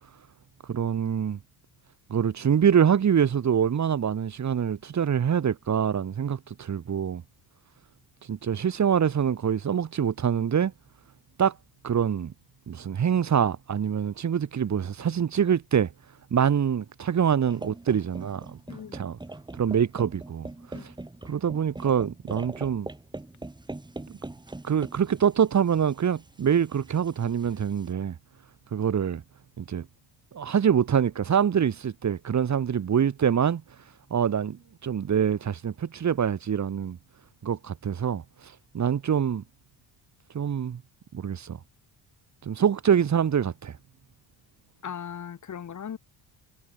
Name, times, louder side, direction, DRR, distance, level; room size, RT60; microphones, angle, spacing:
voice 1, 0.7-1.4 2.1-7.2 8.3-10.7 11.4-11.5 11.8-12.3 12.7-15.9 16.3-18.5 18.9-19.2 19.6-20.5 20.8-20.9 21.3-22.9 24.6-28.2 28.7-29.2 29.6-29.9 30.3-33.6 34.1-37.0 37.4-38.2 38.7-39.4 40.3-40.8 41.1-41.6 42.4-43.7, right 8 dB, 40° right, 3.4 m, -25 dB
sound 1, 17.5-27.9, right 2 dB, 10° right, 5.6 m, -42 dB
voice 2, 44.8-46.0, left 8 dB, 40° left, 6.4 m, -38 dB
cardioid pair, 130°, 43 cm